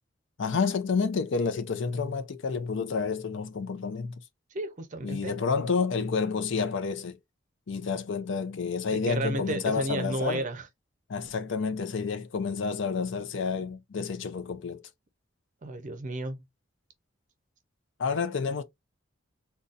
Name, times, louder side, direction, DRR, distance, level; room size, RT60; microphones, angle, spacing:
voice 1, 0.4-4.2 5.0-7.2 7.7-10.4 11.1-14.9 18.0-18.6, left 5 dB, 70° left, 0.5 m, -29 dB
voice 2, 4.5-5.3 9.1-10.6 15.6-16.4, right 2 dB, 40° right, 0.6 m, -32 dB
3.9 x 2.3 x 2.5 m
head